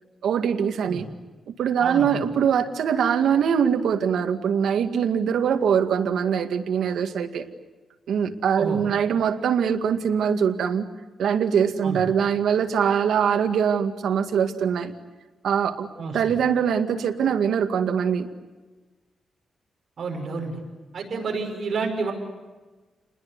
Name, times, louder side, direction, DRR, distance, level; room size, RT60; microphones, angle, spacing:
voice 1, 0.2-1.1 1.5-7.4 8.1-10.9 11.2-14.9 15.4-15.9 16.1-18.3, right 7 dB, 85° right, 6 dB, 2.1 m, -23 dB
voice 2, 1.8-2.2 8.5-8.8 11.8-12.0 16.0-16.2 20.0-20.6 20.9-22.1, right 4 dB, 45° right, 2 dB, 5.8 m, -29 dB
29.5 x 21.0 x 9.7 m, 1.3 s
wide cardioid pair, 170°, 0 cm